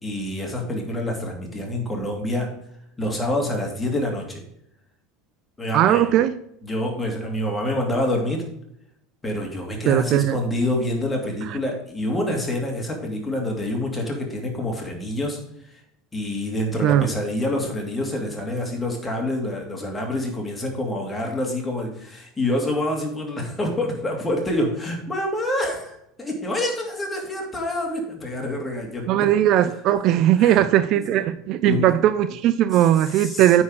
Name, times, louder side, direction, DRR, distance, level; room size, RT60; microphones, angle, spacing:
voice 1, 0.0-2.5 3.0-4.4 5.6-6.1 6.6-8.4 9.2-15.4 16.1-29.3 30.4-30.6 31.6-31.8 33.2-33.6, left 1 dB, 15° left, 0 dB, 2.7 m, -27 dB
voice 2, 5.7-6.4 9.9-10.4 11.5-11.6 16.8-17.1 29.1-33.6, right 12 dB, 50° right, 13 dB, 0.4 m, -19 dB
9.3 x 4.5 x 4.9 m, 0.77 s
figure-of-eight pair, 75°, 0 cm